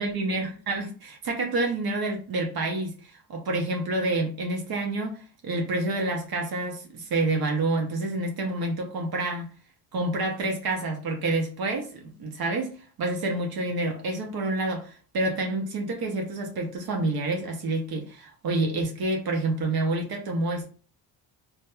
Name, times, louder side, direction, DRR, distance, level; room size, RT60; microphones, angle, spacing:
voice 1, 0.0-9.5 9.9-20.7, right 2 dB, 55° right, 0.8 m, -28 dB
2.7 x 2.2 x 2.2 m
supercardioid pair, 55°, 44 cm